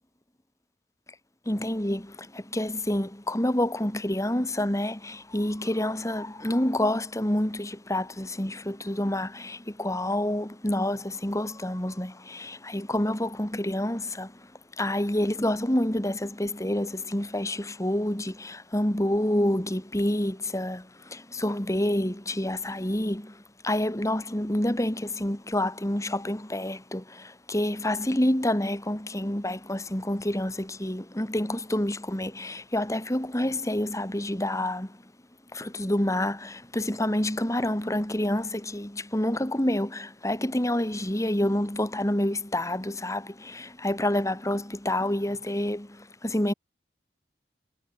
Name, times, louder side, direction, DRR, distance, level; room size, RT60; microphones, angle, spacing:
voice 1, 1.5-14.5 14.8-35.0 35.5-46.5, left 1 dB, 15° left, 2.4 m, -28 dB
head